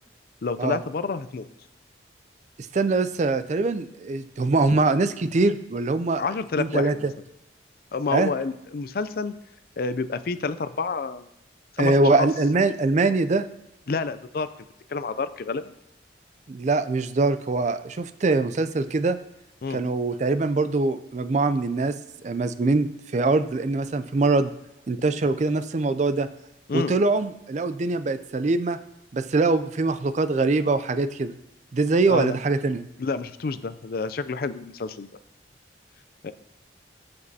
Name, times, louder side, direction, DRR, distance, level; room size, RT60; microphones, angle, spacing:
voice 1, 0.4-1.4 6.2-7.1 7.9-9.3 9.8-11.3 11.8-12.3 13.9-14.5 14.9-15.7 19.6-19.8 26.7-26.9 32.1-32.3 33.0-35.1 36.2-36.3, left 4 dB, 55° left, 13 dB, 0.4 m, -29 dB
voice 2, 2.7-6.2 6.6-6.9 8.1-8.3 11.8-13.4 16.5-19.2 19.7-22.0 22.2-22.9 23.1-24.5 24.9-26.3 26.7-28.8 29.1-31.3 31.7-32.9, right 3 dB, 40° right, 12 dB, 0.4 m, -23 dB
14.0 x 5.2 x 2.8 m, 0.90 s
head